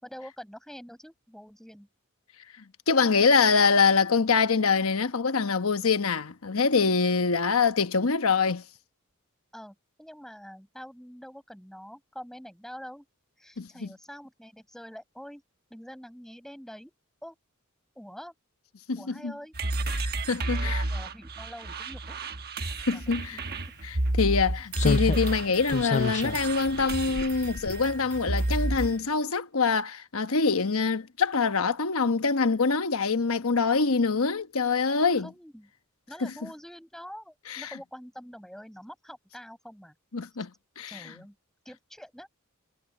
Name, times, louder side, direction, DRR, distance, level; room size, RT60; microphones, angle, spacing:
voice 1, 0.0-1.9 9.5-13.1 13.4-15.4 15.7-16.9 17.2-17.4 17.9-18.3 19.0-19.5 20.4-22.2 22.9-23.0 23.3-23.6 35.2-35.7 36.1-39.9 40.9-41.4 41.6-42.3, equal, ahead, 6.0 m, -45 dB
voice 2, 2.9-8.6 13.6-13.9 18.9-19.3 19.9-20.8 22.9-23.4 23.8-35.3 36.2-36.3 37.5-37.7 40.1-40.5 40.8-41.1, left 4 dB, 80° left, 1.1 m, -25 dB
sound 1, 19.5-29.0, right 2 dB, 50° right, 1.2 m, -31 dB
Slam, 23.4-23.5 24.8-28.3 28.6-28.7, left 4 dB, 35° left, 0.4 m, -31 dB
head